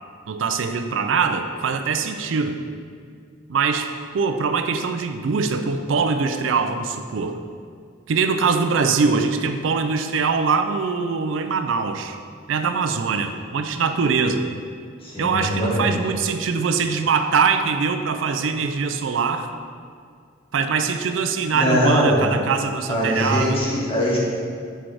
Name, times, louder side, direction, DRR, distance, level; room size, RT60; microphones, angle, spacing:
voice 1, 0.3-2.6 3.5-7.4 8.1-12.2 12.5-14.4 15.2-19.5 20.5-23.6, right 5 dB, 80° right, 8 dB, 0.4 m, -22 dB
voice 2, 15.0-16.0 21.5-22.3 22.9-24.3, equal, 30° left, -6 dB, 1.6 m, -21 dB
6.2 x 4.5 x 4.8 m, 2.2 s
head